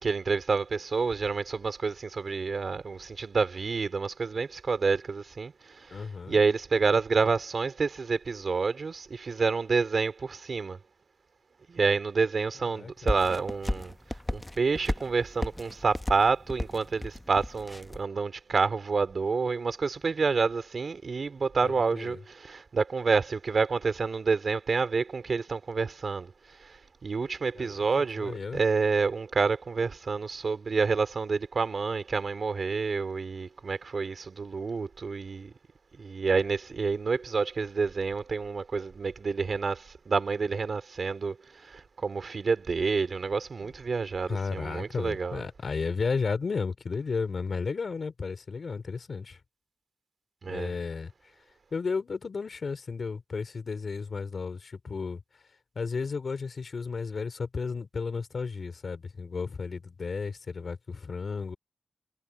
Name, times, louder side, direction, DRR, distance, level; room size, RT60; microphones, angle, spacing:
voice 1, 0.0-10.8 11.7-13.9 14.3-26.3 26.6-35.5 36.0-45.4 50.4-50.7, right 4 dB, 70° right, 3.1 m, -28 dB
voice 2, 5.9-6.4 12.7-13.1 21.6-22.2 27.5-27.8 28.2-28.6 43.6-43.7 44.3-49.4 50.4-51.1 51.7-55.2 55.7-61.6, left 4 dB, 70° left, 3.4 m, -33 dB
sound 1, 13.1-18.0, left 1 dB, 20° left, 1.1 m, -34 dB
cardioid pair, 40°, 0 cm